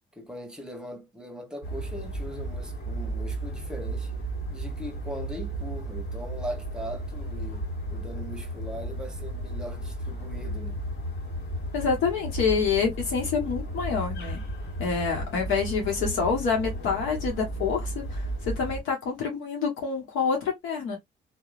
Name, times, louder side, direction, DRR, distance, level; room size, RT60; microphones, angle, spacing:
voice 1, 0.1-4.1 4.5-10.8, equal, 5° right, 1.0 m, -40 dB
sound 1, 1.6-18.8, right 1 dB, 60° left, 1.5 m, -34 dB
voice 2, 11.7-14.4 14.8-21.0, left 5 dB, 85° left, 1.1 m, -27 dB
2.9 x 2.3 x 2.4 m
cardioid pair, 90°, 20 cm